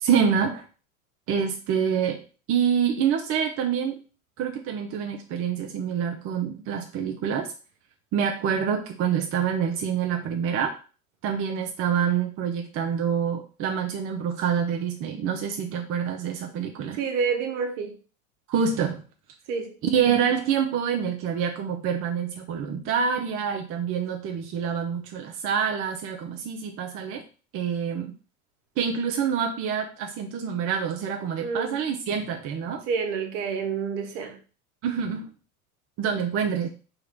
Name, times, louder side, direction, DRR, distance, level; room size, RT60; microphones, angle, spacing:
voice 1, 0.0-0.6 1.3-2.2 2.5-4.0 4.4-7.5 8.1-10.8 11.2-17.0 18.5-19.0 19.8-27.2 27.5-28.1 28.8-32.8 34.8-35.3 36.0-36.7, right 7 dB, 30° right, 0.5 m, -26 dB
voice 2, 16.9-18.0 19.5-19.8 31.4-31.8 32.9-34.4, right 5 dB, 60° right, 1.1 m, -28 dB
2.9 x 2.9 x 4.4 m
hypercardioid pair, 105°, 43 cm